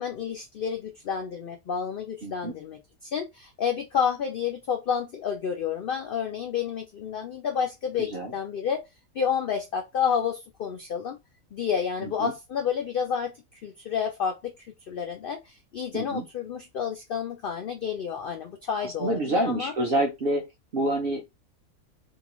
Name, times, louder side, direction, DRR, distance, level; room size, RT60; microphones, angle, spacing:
voice 1, 0.0-8.8 9.1-11.2 11.5-13.4 13.6-14.4 14.9-19.7, left 7 dB, 90° left, 0.4 m, -30 dB
voice 2, 2.2-2.5 8.0-8.3 12.0-12.3 15.9-16.2 18.8-21.2, right 1 dB, 55° right, 0.7 m, -28 dB
2.7 x 2.3 x 2.9 m
omnidirectional pair, 1.5 m